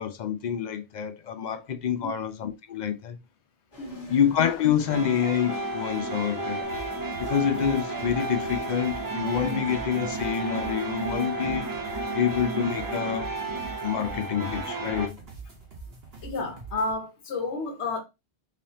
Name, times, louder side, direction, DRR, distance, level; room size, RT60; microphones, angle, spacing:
voice 1, 0.0-3.2 4.1-6.6 7.2-11.7 12.1-13.3 13.8-15.2, left 8 dB, 55° left, 0.5 m, -27 dB
sound 1, 3.7-9.8, equal, 35° left, 1.1 m, -48 dB
voice 2, 3.8-4.2 16.2-18.0, left 3 dB, 90° left, 1.2 m, -31 dB
sound 2, 4.8-15.1, right 2 dB, 25° right, 0.6 m, -32 dB
sound 3, 6.6-16.9, right 4 dB, 65° right, 1.3 m, -44 dB
4.0 x 3.2 x 2.8 m
omnidirectional pair, 1.1 m